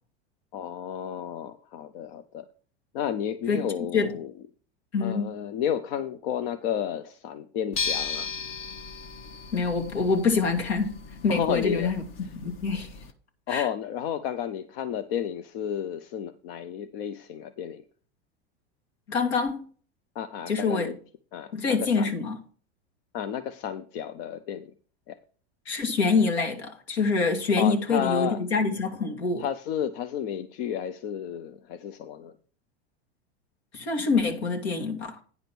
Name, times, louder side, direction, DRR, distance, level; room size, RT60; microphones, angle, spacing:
voice 1, 0.5-2.5 2.9-4.3 5.0-8.3 11.3-11.9 12.2-12.3 13.5-17.8 20.1-21.0 21.3-22.1 23.1-24.7 25.1-25.2 27.6-28.4 29.4-32.3, left 9 dB, 60° left, 0.8 m, -32 dB
voice 2, 4.9-5.3 9.5-10.9 11.2-12.0 12.4-12.9 13.5-13.7 19.1-19.7 20.5-20.9 21.5-22.4 25.7-29.5 33.7-35.2, left 4 dB, 80° left, 2.3 m, -25 dB
sound 1, 7.7-13.1, left 5 dB, 40° left, 1.1 m, -36 dB
9.5 x 5.1 x 5.9 m
hypercardioid pair, 110°, 32 cm